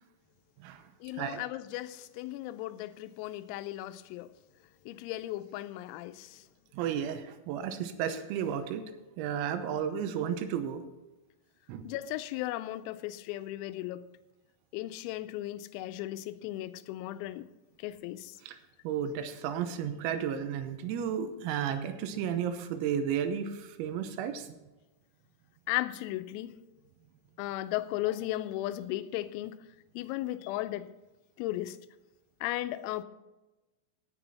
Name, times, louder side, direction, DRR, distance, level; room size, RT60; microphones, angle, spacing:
voice 1, 1.0-4.3 4.9-6.4 11.8-14.1 14.7-17.5 17.8-18.4 25.7-26.5 27.4-29.6 30.0-30.9 31.4-31.8 32.4-33.0, left 15 dB, 85° left, 3.3 m, -36 dB
voice 2, 6.7-8.8 9.2-10.8 11.7-11.9 18.5-18.6 18.9-24.5, right 8 dB, 85° right, 3.7 m, -33 dB
17.0 x 7.7 x 4.2 m
omnidirectional pair, 6.0 m